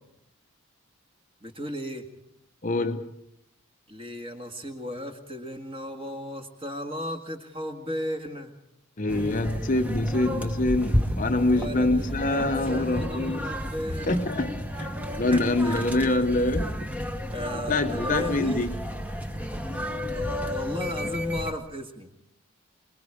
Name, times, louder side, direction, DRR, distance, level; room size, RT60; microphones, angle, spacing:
voice 1, 1.4-2.1 3.9-8.5 11.5-14.2 15.1-15.9 17.3-18.7 20.1-22.1, left 1 dB, 25° right, 1.8 m, -35 dB
voice 2, 2.6-3.0 9.0-13.5 14.1-14.9 15.2-16.7 17.7-18.7, left 2 dB, 35° left, 0.8 m, -25 dB
sound 1, 9.1-21.5, equal, 5° right, 0.9 m, -32 dB
26.5 x 20.0 x 4.9 m
head